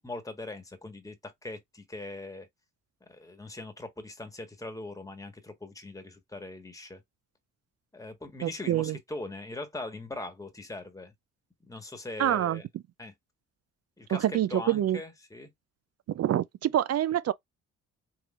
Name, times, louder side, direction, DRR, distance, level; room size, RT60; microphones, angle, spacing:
voice 1, 0.0-2.5 3.1-7.0 7.9-11.1 11.6-12.7 13.0-13.1 14.0-15.5, left 2 dB, 10° left, 1.4 m, -41 dB
voice 2, 8.4-9.0 12.2-12.6 14.1-15.0 16.1-17.3, right 12 dB, 45° right, 0.4 m, -26 dB
4.0 x 2.9 x 2.4 m
supercardioid pair, 55°, 36 cm